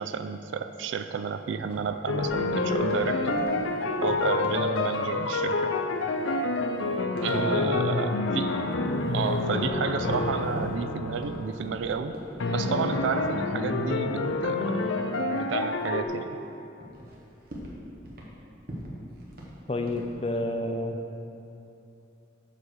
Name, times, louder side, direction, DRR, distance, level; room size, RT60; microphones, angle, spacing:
voice 1, 0.0-3.4 4.0-5.7 7.2-8.6 9.1-12.2 12.5-14.9 15.3-16.4, right 6 dB, 80° right, 9 dB, 0.3 m, -31 dB
sound 1, 1.6-1.9 2.2-2.5 2.7-3.0 3.4-3.7 4.0-4.8 6.0-6.7 7.0-7.3 7.6-7.9 8.6-8.7 9.4-9.7 10.0-11.4 11.6-12.4 14.0-14.8 16.3-16.4 16.8-17.2 17.5-18.4 18.7-19.6 19.8-20.1, right 1 dB, 50° right, 1.1 m, -41 dB
sound 2, 2.1-11.5 12.4-16.1, left 3 dB, 85° left, 0.5 m, -28 dB
voice 2, 7.3-7.8 19.7-21.0, left 1 dB, 30° left, 5 dB, 0.5 m, -30 dB
7.1 x 4.9 x 6.4 m, 2.9 s
head